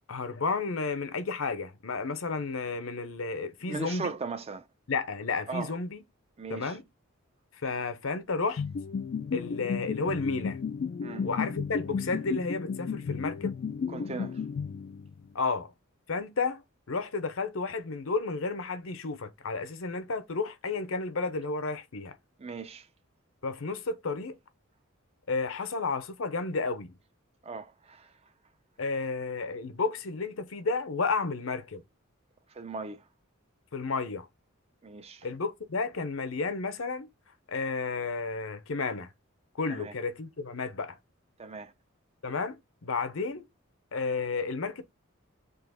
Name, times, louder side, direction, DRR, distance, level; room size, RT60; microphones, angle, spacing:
voice 1, 0.1-4.1 4.9-6.0 6.5-6.8 7.6-8.6 9.3-10.6 11.2-13.6 15.3-15.7 16.1-16.6 16.9-22.2 23.4-24.4 25.3-26.9 28.8-31.8 33.7-34.3 35.2-37.1 37.5-39.1 39.6-41.0 42.2-43.5 43.9-44.8, left 4 dB, 75° left, 0.7 m, -32 dB
voice 2, 3.7-4.7 5.5-5.7 6.4-6.8 11.0-11.3 13.9-14.4 22.4-22.9 27.4-28.1 32.5-33.0 34.8-35.3 39.7-39.9 41.4-41.7, right 4 dB, 30° right, 0.5 m, -38 dB
sound 1, 8.6-15.3, left 6 dB, 45° left, 0.3 m, -33 dB
3.8 x 2.9 x 4.8 m
head